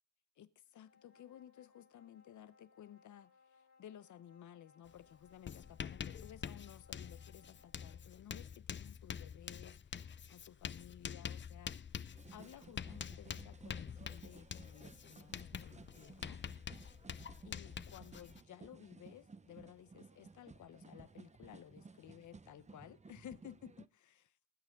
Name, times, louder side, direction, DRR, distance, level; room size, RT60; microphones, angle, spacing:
voice 1, 0.4-12.0 12.3-16.4 17.4-24.4, left 10 dB, 85° left, 0.8 m, -56 dB
sound 1, 0.7-8.1, left 5 dB, 70° left, 3.1 m, -68 dB
Writing, 4.9-5.0 5.3-18.4, left 7 dB, 40° left, 0.5 m, -46 dB
sound 2, 12.1-23.9, right 4 dB, 25° right, 0.6 m, -57 dB
20.0 x 8.4 x 3.8 m
cardioid pair, 90°, 29 cm